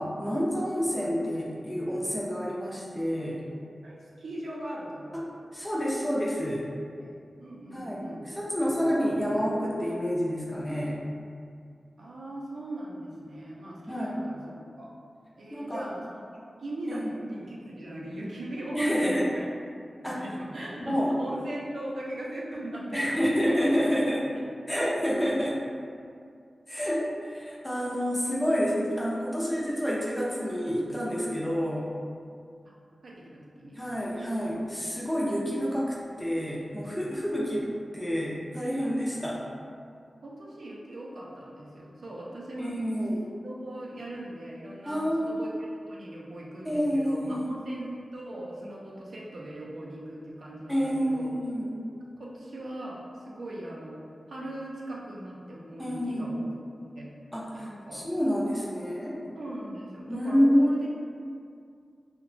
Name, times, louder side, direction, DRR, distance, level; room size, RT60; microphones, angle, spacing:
voice 1, 0.0-3.4 5.1-5.3 5.5-6.7 7.7-11.0 13.9-14.2 15.5-15.8 16.9-17.1 18.7-19.3 20.0-20.2 20.8-21.1 22.9-24.3 24.7-25.6 26.7-31.8 33.8-39.4 42.6-43.2 44.9-45.4 46.6-47.6 50.7-51.7 55.8-56.3 57.3-59.2 60.1-60.7, equal, 10° left, -6 dB, 0.5 m, -28 dB
voice 2, 3.8-5.3 6.9-8.3 12.0-14.9 15.4-19.5 20.0-23.5 24.4-24.5 33.0-33.8 40.2-42.8 43.4-51.3 52.1-54.0 54.3-56.5 57.0-57.1 57.5-58.0 59.3-60.9, right 1 dB, 75° right, -4 dB, 0.4 m, -39 dB
2.8 x 2.1 x 2.5 m, 2.3 s
wide cardioid pair, 100°, 0 cm